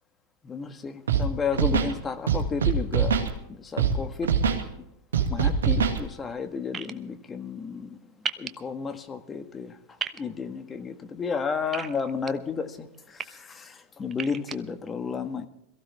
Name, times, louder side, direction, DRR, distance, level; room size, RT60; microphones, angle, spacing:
voice 1, 0.4-3.1 3.6-4.3 5.3-7.9 8.4-9.7 10.2-12.9 13.3-15.5, left 5 dB, 25° left, 1.5 m, -32 dB
Scratching (performance technique), 1.1-1.2 1.5-1.9 2.3-3.3 3.8-3.9 4.2-4.6 5.1-6.0, right 7 dB, 85° right, 2.1 m, -23 dB
sound 1, 6.7-6.9 8.2-8.5 10.0-10.2 11.7-12.3 12.9-13.2 14.1-14.6, right 7 dB, 30° right, 1.0 m, -33 dB
22.0 x 15.5 x 3.5 m
hypercardioid pair, 100°, 0 cm